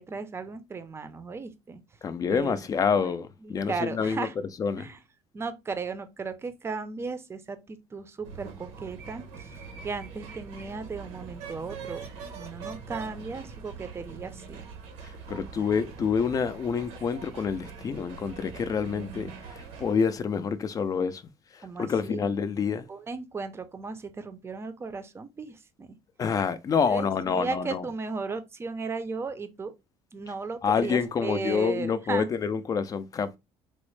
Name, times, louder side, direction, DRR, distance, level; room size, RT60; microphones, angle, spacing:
voice 1, 0.0-1.8 2.3-3.2 3.4-4.3 4.8-5.0 5.3-12.1 12.3-14.7 21.6-22.3 22.9-26.0 26.9-29.7 30.1-32.3, right 4 dB, 20° right, 0.5 m, -36 dB
voice 2, 2.0-4.3 4.6-4.9 15.0-21.2 21.5-22.9 26.2-27.9 30.6-33.4, left 6 dB, 30° left, 0.4 m, -27 dB
sound 1, 8.2-19.9, right 5 dB, 85° right, 1.0 m, -43 dB
4.0 x 2.0 x 3.1 m
cardioid pair, 125°, 11 cm